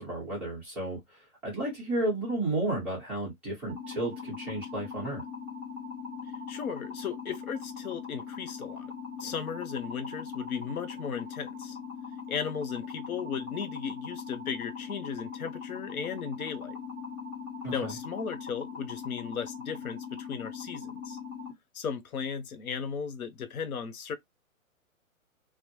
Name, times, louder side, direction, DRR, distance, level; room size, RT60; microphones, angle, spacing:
voice 1, 0.0-5.2 17.6-17.9, right 2 dB, 5° right, 0.8 m, -33 dB
sound 1, 3.7-21.5, left 5 dB, 20° left, 1.0 m, -40 dB
voice 2, 6.5-8.9 9.2-11.8 12.3-16.8 17.7-21.2 21.7-24.1, left 6 dB, 90° left, 0.7 m, -36 dB
2.1 x 2.0 x 2.9 m
hypercardioid pair, 155°, 42 cm